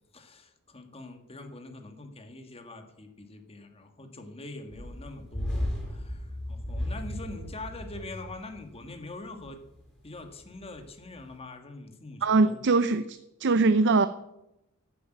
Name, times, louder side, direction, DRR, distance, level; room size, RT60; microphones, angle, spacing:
voice 1, 0.1-9.6 10.0-12.6, left 2 dB, 25° left, 6 dB, 1.8 m, -44 dB
sound 1, 4.7-8.9 9.4-9.5 10.1-10.9 11.2-11.3, left 1 dB, 5° left, 5.3 m, -35 dB
voice 2, 12.2-14.1, right 3 dB, 55° right, 12 dB, 0.6 m, -22 dB
12.5 x 8.2 x 9.1 m, 0.89 s
head